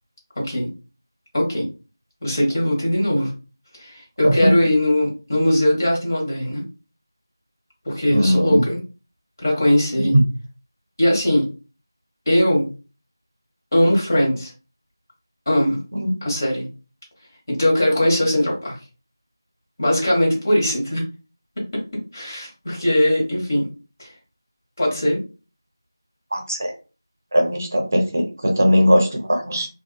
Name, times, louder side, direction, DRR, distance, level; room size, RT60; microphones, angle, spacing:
voice 1, 0.4-0.7 1.3-1.7 2.2-3.3 3.8-6.6 7.8-8.8 9.4-10.1 11.0-11.5 12.3-12.7 13.7-14.5 15.5-15.8 16.2-16.7 17.5-18.8 19.8-21.0 22.1-23.7 24.0-24.1 24.8-25.2, left 1 dB, 45° left, -3 dB, 1.3 m, -20 dB
voice 2, 4.2-4.5 8.1-8.6 10.0-10.2 15.9-16.1 26.3-26.7 27.3-29.7, equal, 40° right, 3 dB, 0.6 m, -19 dB
2.8 x 2.3 x 2.2 m, 0.33 s
figure-of-eight pair, 170°, 2 cm